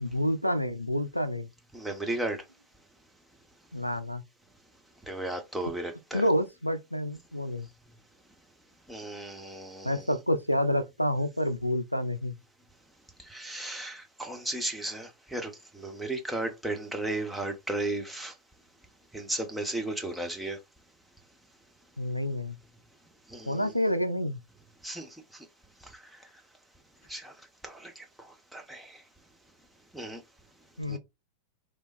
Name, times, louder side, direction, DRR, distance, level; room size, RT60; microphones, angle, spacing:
voice 1, 0.0-1.5 3.7-4.2 6.1-7.7 9.8-12.3 22.0-22.6 23.5-24.4 30.8-31.0, equal, 90° left, 0.3 m, -28 dB
voice 2, 1.7-2.4 5.0-6.2 8.9-10.0 13.3-18.3 19.1-20.6 23.3-23.7 24.8-25.1 27.1-27.3 27.6-28.0 28.5-29.0 29.9-30.2 30.9-31.0, right 2 dB, 5° right, 0.7 m, -35 dB
3.3 x 2.2 x 2.4 m
figure-of-eight pair, 90°, 0 cm